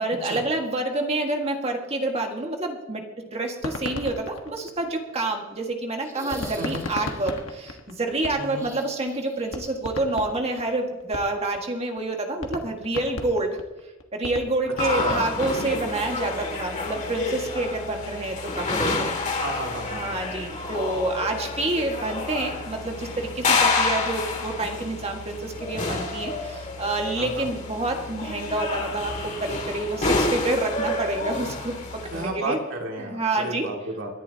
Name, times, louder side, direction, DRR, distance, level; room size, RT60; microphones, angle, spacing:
voice 1, 0.0-3.0 3.3-13.6 14.1-19.1 19.9-32.6 33.0-33.7, right 2 dB, 30° right, 2 dB, 1.8 m, -28 dB
sound 1, 3.5-5.3 6.3-8.7 9.1-9.2 9.5-11.6 12.0-12.1 12.4-16.0, left 2 dB, 70° left, 1.4 m, -35 dB
sound 2, 6.0-7.4 8.5-9.7 10.0-10.1 11.7-11.8, right 1 dB, 15° right, 1.6 m, -41 dB
voice 2, 8.3-8.7 14.9-15.3 19.4-20.2 27.2-27.5 32.1-34.1, right 2 dB, 65° right, 0 dB, 2.5 m, -32 dB
sound 3, 14.8-32.3, left 3 dB, 35° left, 2.3 m, -29 dB
29.0 x 11.0 x 2.9 m, 1.1 s
head